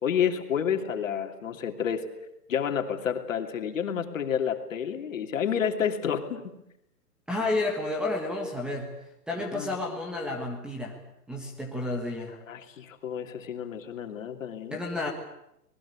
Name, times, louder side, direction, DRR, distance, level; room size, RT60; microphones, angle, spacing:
voice 1, 0.0-2.1 2.5-6.4 9.3-9.7 12.5-14.8, left 8 dB, 55° left, 5 dB, 3.0 m, -30 dB
voice 2, 7.3-8.9 9.3-11.0 11.3-12.4 14.7-15.1, left 2 dB, ahead, 1 dB, 1.5 m, -31 dB
26.0 x 20.0 x 8.5 m, 0.82 s
hypercardioid pair, 160°, 48 cm